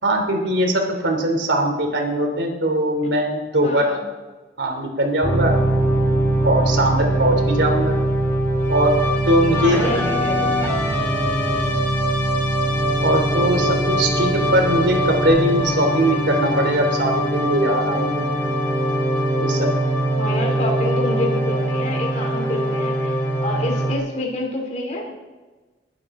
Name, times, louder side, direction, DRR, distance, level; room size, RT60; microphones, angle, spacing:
voice 1, 0.0-3.9 4.6-5.5 6.4-8.0 8.7-9.0 9.3-9.8 13.0-18.3 19.3-19.7, right 1 dB, 85° right, 3 dB, 3.0 m, -20 dB
voice 2, 3.6-4.0 9.5-10.5 20.2-25.1, left 1 dB, 40° left, 0 dB, 2.9 m, -28 dB
sound 1, 5.2-23.9, right 1 dB, 15° left, 3.1 m, -21 dB
21.0 x 11.5 x 3.7 m, 1.2 s
head